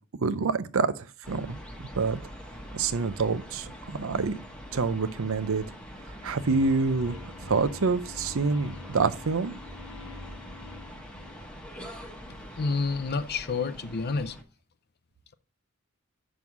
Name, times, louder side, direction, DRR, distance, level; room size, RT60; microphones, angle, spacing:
voice 1, 0.2-1.6 2.0-2.2 2.7-4.4 4.7-5.6 6.2-7.2 7.4-9.5, right 4 dB, 70° right, 0.6 m, -27 dB
sound 1, 1.2-14.4, equal, 5° left, 1.2 m, -44 dB
sound 2, 6.4-11.5, left 4 dB, 85° left, 0.9 m, -46 dB
voice 2, 12.6-14.4, left 4 dB, 50° left, 0.6 m, -29 dB
6.3 x 5.4 x 6.0 m
head